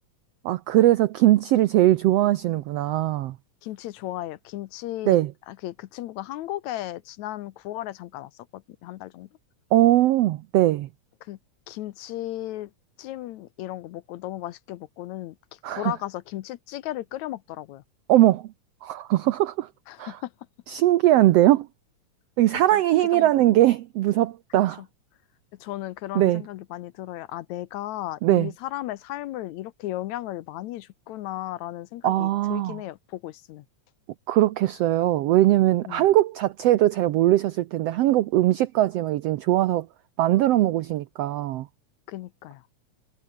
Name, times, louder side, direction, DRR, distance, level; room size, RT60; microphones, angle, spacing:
voice 1, 0.4-3.4 5.1-5.3 9.7-10.9 15.6-15.9 18.1-18.5 18.8-19.7 20.0-20.2 20.7-21.7 22.4-24.8 26.1-26.4 28.2-28.5 32.0-32.8 34.3-39.9 40.2-41.7, right 15 dB, 85° right, 1.4 m, -20 dB
voice 2, 3.6-5.2 5.5-9.3 11.2-11.4 11.7-12.7 13.0-17.8 19.9-20.3 22.7-22.8 23.1-23.6 25.6-33.7 35.9-36.1 42.1-42.6, left 14 dB, 75° left, 1.9 m, -35 dB
omnidirectional pair, 3.6 m